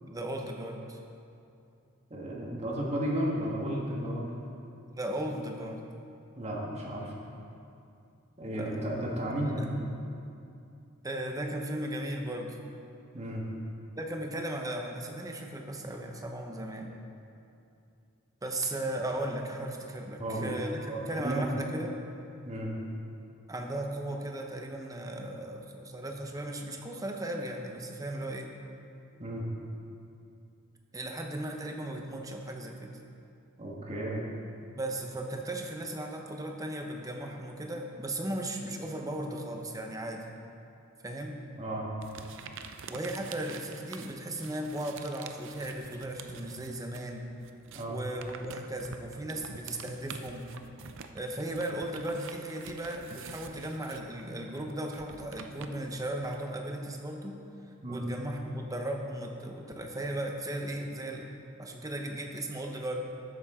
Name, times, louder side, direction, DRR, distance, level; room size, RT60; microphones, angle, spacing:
voice 1, 0.1-1.0 4.9-5.8 8.4-8.9 9.4-9.9 11.0-12.6 14.0-16.9 18.4-22.0 23.5-28.5 30.9-33.0 34.7-40.3 41.0-41.4 42.9-47.3 47.9-50.5 51.1-57.4 57.9-61.3 61.6-63.0, right 1 dB, 15° right, 2 dB, 0.9 m, -36 dB
voice 2, 2.1-4.3 6.4-7.1 8.4-9.6 13.1-13.4 20.2-20.5 20.8-21.5 22.5-22.7 29.2-29.4 33.6-34.2 41.6-41.9 47.7-48.0 57.8-58.1, right 1 dB, 30° right, -3 dB, 1.7 m, -33 dB
sound 1, 42.0-47.1 47.4-56.4, right 6 dB, 65° right, 0.6 m, -47 dB
13.0 x 9.1 x 3.7 m, 2.6 s
head